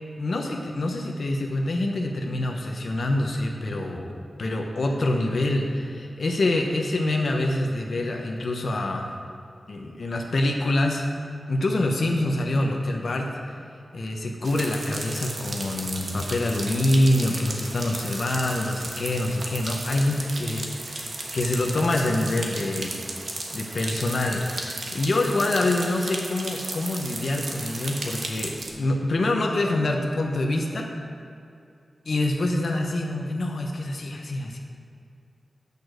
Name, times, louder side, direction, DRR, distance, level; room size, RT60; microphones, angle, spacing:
voice 1, 0.2-9.1 9.7-11.0 11.5-13.3 13.9-22.9 23.5-30.9 32.0-34.6, left 1 dB, 60° left, 1 dB, 0.9 m, -26 dB
sound 1, 14.4-28.7, right 2 dB, 65° right, 1.2 m, -34 dB
8.6 x 6.7 x 6.3 m, 2.6 s
wide cardioid pair, 135°, 0 cm